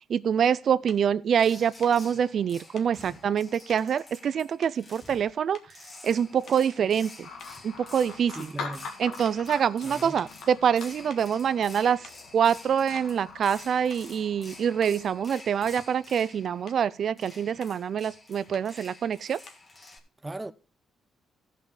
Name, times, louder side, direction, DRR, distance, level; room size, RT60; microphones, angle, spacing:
voice 1, 0.1-5.6 6.0-7.3 7.6-8.5 9.0-19.4, right 8 dB, 60° right, 0.4 m, -25 dB
sound 1, 0.9-1.1 1.8-2.0 2.8-3.0 3.7-3.9 4.6-5.2 5.5-5.9 6.4-6.8 7.4-9.0 9.2-9.5 10.2-10.4 11.1-11.3 11.9-12.3 13.0-13.2 13.9-14.2 14.8-15.0 15.8-16.1 16.4-16.9 17.6-17.8 18.5-18.8 19.5-19.7, left 5 dB, 65° left, 1.5 m, -52 dB
sound 2, 1.4-20.0, left 2 dB, 30° left, 2.0 m, -49 dB
sound 3, 7.2-15.1, left 5 dB, 80° left, 2.0 m, -44 dB
voice 2, 8.3-8.9 9.8-10.2 20.2-20.5, right 2 dB, 15° right, 0.7 m, -37 dB
14.5 x 5.5 x 4.8 m
cardioid pair, 90°, 0 cm